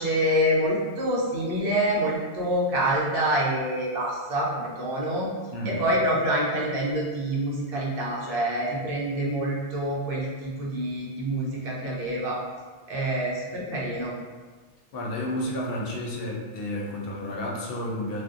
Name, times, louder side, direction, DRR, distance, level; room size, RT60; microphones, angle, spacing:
voice 1, 0.0-5.3 5.6-12.4 12.9-14.1, right 1 dB, 65° right, -4 dB, 0.8 m, -26 dB
voice 2, 5.5-5.9 14.9-18.2, left 1 dB, 70° left, -2 dB, 0.7 m, -31 dB
2.6 x 2.1 x 2.4 m, 1.4 s
omnidirectional pair, 1.1 m